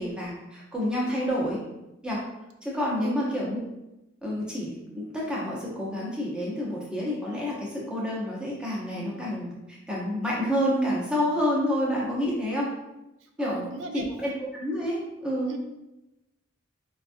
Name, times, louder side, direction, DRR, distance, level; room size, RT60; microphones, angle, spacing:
voice 1, 0.0-1.6 2.0-2.2 2.6-3.6 4.2-12.7 13.4-13.6 13.9-15.5, equal, 5° right, -5 dB, 0.7 m, -29 dB
voice 2, 13.2-14.0 15.5-15.6, right 3 dB, 70° right, 5 dB, 0.3 m, -37 dB
4.3 x 2.3 x 2.6 m, 0.96 s
head